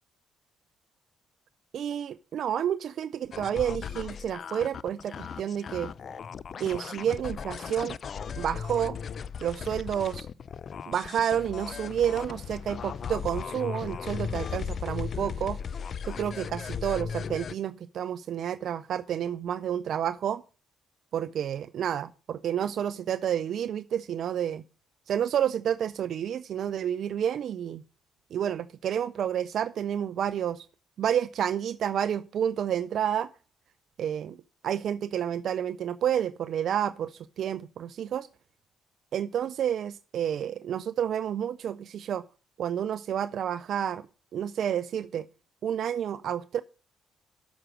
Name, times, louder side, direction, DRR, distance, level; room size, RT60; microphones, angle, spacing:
voice 1, 1.7-5.9 6.6-8.0 8.4-9.0 9.4-10.3 10.9-15.6 16.1-20.4 21.1-24.6 25.1-27.8 28.3-30.7 31.0-33.3 34.0-34.4 34.6-38.3 39.1-42.2 42.6-44.1 44.3-45.3 45.6-46.6, right 9 dB, 65° right, 0.4 m, -30 dB
sound 1, 3.3-17.5, left 6 dB, 55° left, 0.4 m, -37 dB
7.9 x 6.2 x 7.5 m
supercardioid pair, 70°, 0 cm